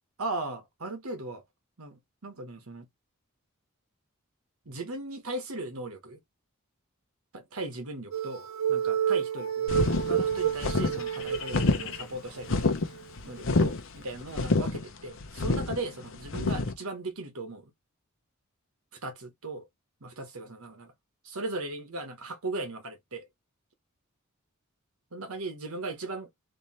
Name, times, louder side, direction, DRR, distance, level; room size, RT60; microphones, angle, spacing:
voice 1, 0.2-1.4 1.8-2.9 4.6-6.2 7.3-13.0 13.2-17.7 18.9-19.7 20.0-20.9 21.2-23.3 25.1-26.5, right 2 dB, 90° right, 1.3 m, -38 dB
sound 1, 8.1-11.9 12.4-12.5 13.0-13.1, right 9 dB, 65° right, 0.7 m, -29 dB
Shaking towel, 9.7-16.7, left 3 dB, 65° left, 0.8 m, -28 dB
3.3 x 2.8 x 4.2 m
head